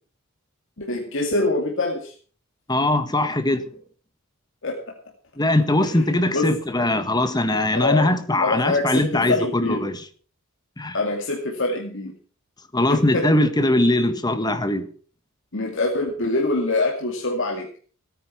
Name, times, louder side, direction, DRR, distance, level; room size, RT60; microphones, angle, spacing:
voice 1, 0.8-2.1 4.6-4.8 6.3-6.5 7.7-8.1 8.4-9.9 10.9-12.2 12.9-13.3 15.5-17.8, left 2 dB, 65° left, 2.5 m, -24 dB
voice 2, 2.7-3.6 5.4-10.0 10.8-11.0 12.7-14.9, left 1 dB, 20° left, 1.5 m, -21 dB
17.0 x 9.9 x 6.0 m
head